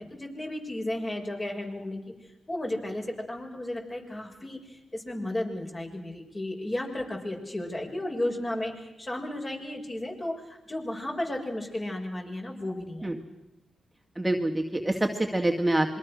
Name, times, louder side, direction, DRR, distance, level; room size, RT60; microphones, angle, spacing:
voice 1, 0.0-2.0 2.5-13.2, left 1 dB, 30° left, 1 dB, 6.4 m, -34 dB
voice 2, 14.2-16.0, right 1 dB, 15° right, 3 dB, 2.1 m, -26 dB
26.5 x 23.0 x 6.4 m, 0.94 s
cardioid pair, 60°, 0 cm